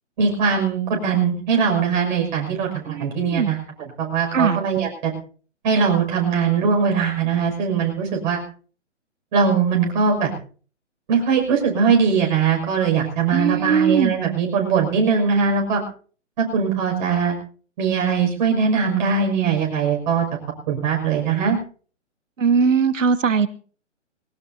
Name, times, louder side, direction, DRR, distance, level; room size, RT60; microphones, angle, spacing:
voice 1, 0.2-5.1 5.6-8.4 9.3-10.3 11.1-15.8 16.4-17.3 17.8-20.3 20.7-21.6, right 6 dB, 40° right, 1 dB, 6.2 m, -21 dB
voice 2, 2.9-3.5 4.3-4.6 13.3-14.1 22.4-23.5, right 6 dB, 85° right, 15 dB, 1.1 m, -20 dB
21.5 x 18.5 x 2.8 m, 0.41 s
hypercardioid pair, 145°, 37 cm